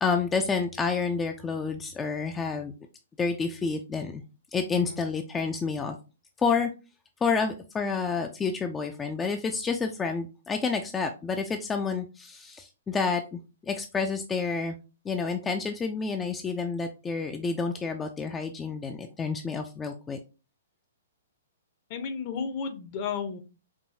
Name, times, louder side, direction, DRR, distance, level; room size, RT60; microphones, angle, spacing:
voice 1, 0.0-2.7 3.2-4.2 4.5-6.0 6.4-6.7 7.2-14.8 15.1-20.2, left 5 dB, 15° left, 5 dB, 0.4 m, -29 dB
voice 2, 21.9-23.4, left 6 dB, 45° left, 9 dB, 0.7 m, -33 dB
4.6 x 2.6 x 2.7 m, 0.31 s
hypercardioid pair, 120°, 0 cm